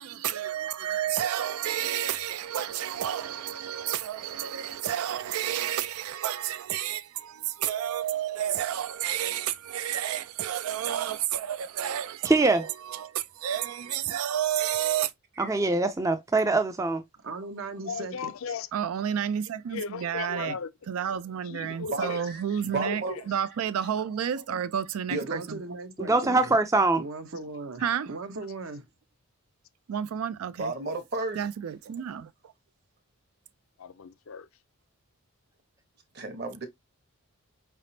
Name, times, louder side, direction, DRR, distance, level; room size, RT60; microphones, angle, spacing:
voice 1, 0.0-15.1 18.7-20.6 20.9-25.6 27.8-28.1 29.9-30.7 31.4-32.5, right 10 dB, 85° right, 0.4 m, -31 dB
voice 2, 12.2-12.7 15.4-17.0 26.0-27.0, right 3 dB, 15° right, 0.4 m, -23 dB
voice 3, 17.2-18.3 20.4-20.6 25.2-26.6 26.9-28.8, right 3 dB, 65° right, 0.8 m, -38 dB
voice 4, 17.8-18.7 19.7-20.7 21.5-22.2 22.5-23.0 33.8-34.5, left 6 dB, 70° left, 0.5 m, -36 dB
voice 5, 21.8-23.2 25.1-25.4 30.5-31.4 36.1-36.7, right 2 dB, 50° right, 1.1 m, -33 dB
4.9 x 3.4 x 2.7 m
head